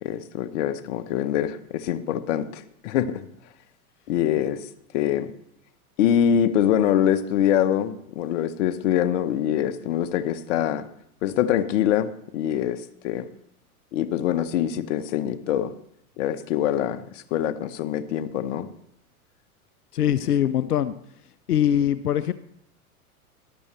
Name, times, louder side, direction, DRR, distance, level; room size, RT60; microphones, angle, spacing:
voice 1, 0.0-3.3 4.1-4.7 4.9-5.3 6.0-10.9 11.2-13.3 13.9-15.7 16.2-18.7, left 10 dB, 55° left, 0.9 m, -24 dB
voice 2, 19.9-20.9 21.5-22.3, left 10 dB, 90° left, 0.6 m, -22 dB
13.5 x 11.5 x 3.3 m
hypercardioid pair, 95°, 44 cm